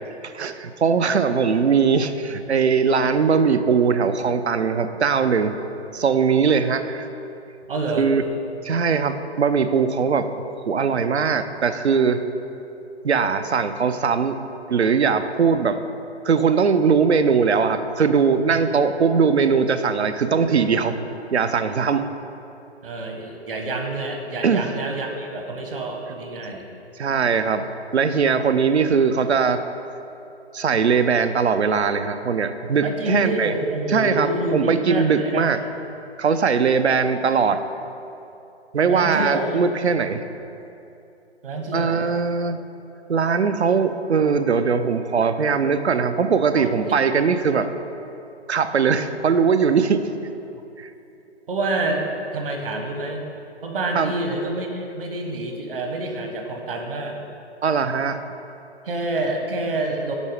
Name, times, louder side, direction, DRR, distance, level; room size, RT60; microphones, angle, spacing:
voice 1, 0.2-5.5 5.9-7.1 8.0-8.2 8.6-12.2 13.0-14.4 14.7-15.8 16.2-21.0 21.3-22.1 24.4-24.7 27.0-27.7 27.9-29.6 30.5-33.5 33.9-35.6 36.2-37.6 38.7-40.2 41.7-42.6 43.1-47.7 48.5-50.1 50.8-50.9 53.9-54.1 57.6-58.2, right 5 dB, 70° right, 10 dB, 0.6 m, -20 dB
voice 2, 7.7-8.1 18.5-18.6 22.8-26.6 32.8-35.5 38.9-39.6 41.4-42.1 46.6-46.7 51.5-52.0 52.3-53.2 53.6-57.2 58.8-60.1, right 2 dB, 55° right, 3 dB, 1.3 m, -27 dB
10.5 x 4.3 x 4.9 m, 2.8 s
figure-of-eight pair, 135°, 34 cm